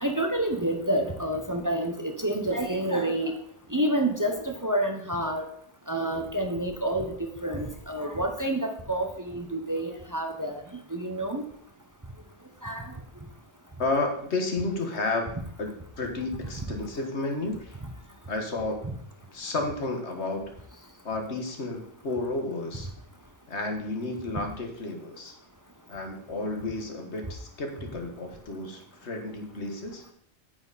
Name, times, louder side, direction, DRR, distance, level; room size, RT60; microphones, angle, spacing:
voice 1, 0.0-3.3 3.7-5.4 5.9-7.1 7.4-10.6 10.9-11.4 12.6-12.9 18.8-18.9, right 1 dB, 20° right, 4 dB, 0.9 m, -28 dB
voice 2, 13.8-17.8 18.3-18.8 19.3-20.5 21.0-22.9 23.5-25.3 25.9-30.0, left 2 dB, 85° left, 4 dB, 1.8 m, -32 dB
9.0 x 7.9 x 4.1 m, 0.64 s
omnidirectional pair, 1.1 m